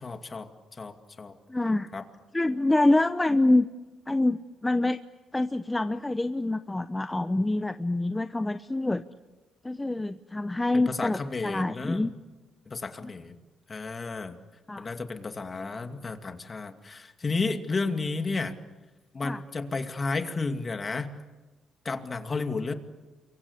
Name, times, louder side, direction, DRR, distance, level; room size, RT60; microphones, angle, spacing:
voice 1, 0.0-1.4 1.9-2.0 10.7-12.1 12.7-13.4 13.7-14.4 14.8-18.5 19.1-21.1 21.8-22.7, left 3 dB, 35° left, 6 dB, 2.4 m, -32 dB
voice 2, 1.5-1.9 2.3-3.7 4.1-5.0 5.3-9.0 9.6-12.1 14.7-14.9 19.2-19.4, left 2 dB, 15° left, 10 dB, 0.8 m, -26 dB
28.5 x 23.5 x 8.4 m, 1.2 s
cardioid pair, 90°, 0 cm